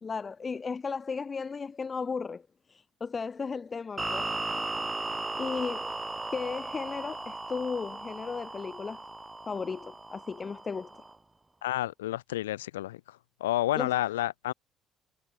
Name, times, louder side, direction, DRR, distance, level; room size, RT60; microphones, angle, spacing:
voice 1, 0.0-4.4 5.4-5.9 6.3-9.0 9.5-10.9 13.8-14.0, left 5 dB, 30° left, 0.9 m, -35 dB
sound 1, 4.0-11.2, right 2 dB, 15° right, 1.6 m, -37 dB
voice 2, 11.6-14.5, left 15 dB, 75° left, 1.2 m, -30 dB
figure-of-eight pair, 50°, 0 cm